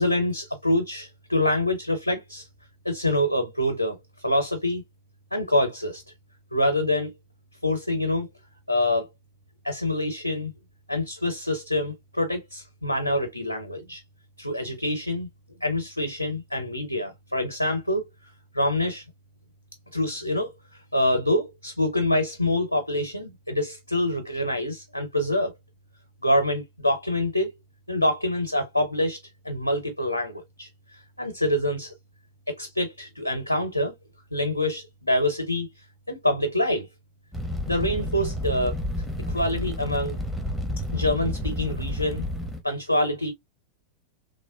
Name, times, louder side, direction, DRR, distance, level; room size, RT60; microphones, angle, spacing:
voice 1, 0.0-2.5 2.8-4.0 4.2-4.8 5.3-6.0 6.5-7.1 7.6-8.3 8.7-9.1 9.6-10.5 10.9-14.0 14.4-15.3 15.6-18.0 18.5-19.0 19.9-20.5 20.9-25.5 26.2-27.5 27.9-29.2 29.4-30.7 31.2-31.9 32.5-33.9 34.3-35.7 36.1-36.9 37.7-38.8 39.3-40.2 40.9-42.2 42.6-43.3, left 1 dB, 85° left, 0.6 m, -25 dB
Fire, 37.3-42.6, left 1 dB, 5° right, 0.7 m, -30 dB
3.2 x 2.1 x 2.3 m
figure-of-eight pair, 90°, 0 cm